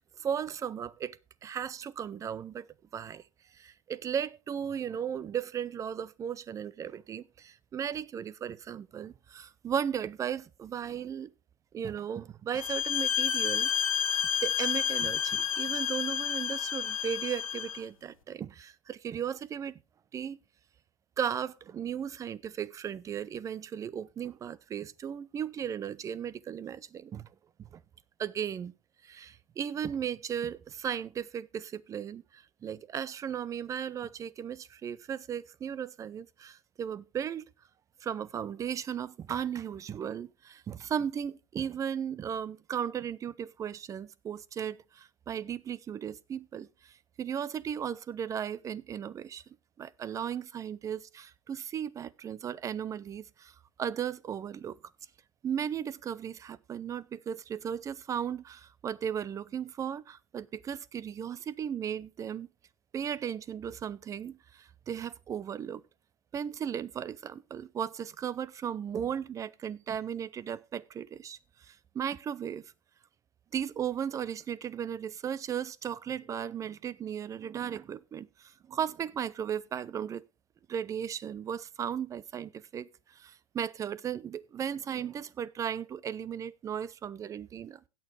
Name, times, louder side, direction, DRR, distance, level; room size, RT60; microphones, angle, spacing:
voice 1, 0.2-1.2 1.4-2.7 2.9-3.2 3.5-11.3 11.7-13.7 14.4-19.8 20.1-20.4 21.2-27.3 27.6-27.8 28.2-28.7 29.0-37.5 38.0-49.4 49.8-54.8 55.4-62.5 62.9-65.8 66.3-72.6 73.5-80.2 80.7-87.8, right 8 dB, 20° right, 0.5 m, -36 dB
sound 1, 12.5-17.8, left 8 dB, 85° left, 1.3 m, -30 dB
16.5 x 6.8 x 3.3 m
hypercardioid pair, 115°, 17 cm